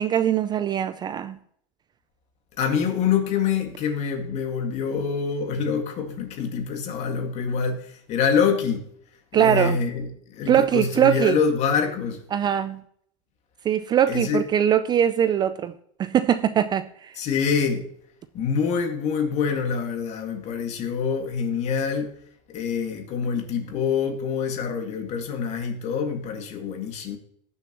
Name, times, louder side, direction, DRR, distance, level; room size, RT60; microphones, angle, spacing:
voice 1, 0.0-1.4 9.3-9.8 10.5-11.4 12.3-12.8 13.6-15.7 16.0-17.1, right 9 dB, 25° right, 0.4 m, -21 dB
voice 2, 2.6-8.8 9.3-12.2 14.1-14.4 17.2-17.9 18.3-22.1 22.5-27.2, left 6 dB, 40° left, 2.0 m, -25 dB
18.5 x 7.0 x 3.0 m
supercardioid pair, 130°, 17 cm